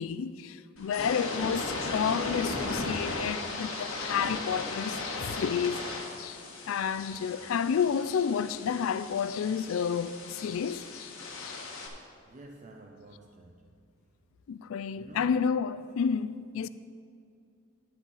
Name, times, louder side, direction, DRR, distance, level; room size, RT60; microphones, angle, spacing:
voice 1, 0.0-5.8 6.2-6.4 6.7-11.1 11.4-11.6 14.5-16.7, left 7 dB, 70° left, 0.3 m, -30 dB
sound 1, 0.8-11.9, left 2 dB, 90° left, 1.4 m, -37 dB
voice 2, 12.3-13.8 14.9-15.4, right 2 dB, 35° right, 0.5 m, -50 dB
10.5 x 8.5 x 4.0 m
head